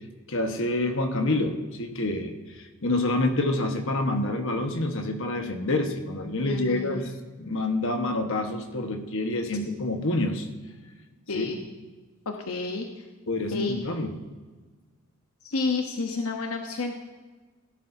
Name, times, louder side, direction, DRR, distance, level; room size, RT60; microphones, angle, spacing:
voice 1, 0.3-2.3 2.8-7.1 7.4-10.5 11.3-11.5 13.3-14.1, left 2 dB, 65° left, 5 dB, 1.3 m, -27 dB
voice 2, 6.4-7.1 11.3-11.6 12.3-13.0 13.5-13.8 15.4-17.0, left 3 dB, 85° left, 3 dB, 1.0 m, -30 dB
16.5 x 11.0 x 2.7 m, 1.3 s
head